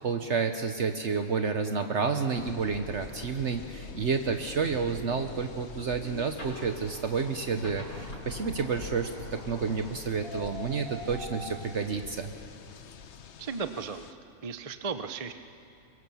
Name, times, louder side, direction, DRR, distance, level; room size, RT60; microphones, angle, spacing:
voice 1, 0.0-12.3, right 5 dB, 55° right, 6 dB, 1.2 m, -30 dB
sound 1, 2.3-14.1, left 7 dB, 55° left, 1.0 m, -45 dB
sound 2, 5.8-12.0, equal, 80° left, 5.5 m, -44 dB
voice 2, 13.4-14.1 14.4-15.3, right 5 dB, 35° right, 9 dB, 0.6 m, -35 dB
24.0 x 22.5 x 7.0 m, 2.6 s
omnidirectional pair, 1.5 m